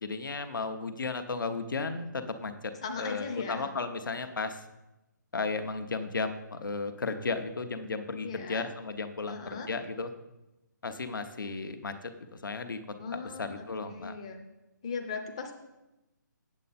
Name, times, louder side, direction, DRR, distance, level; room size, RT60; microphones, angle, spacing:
voice 1, 0.0-4.6 5.3-10.1 10.8-12.8 13.1-14.1, left 4 dB, 85° left, 8 dB, 1.0 m, -34 dB
voice 2, 2.8-3.7 8.2-8.7 9.3-9.7 13.0-14.4 14.8-15.5, left 5 dB, 15° left, 3 dB, 0.5 m, -38 dB
8.2 x 7.7 x 4.2 m, 0.98 s
hypercardioid pair, 175°, 11 cm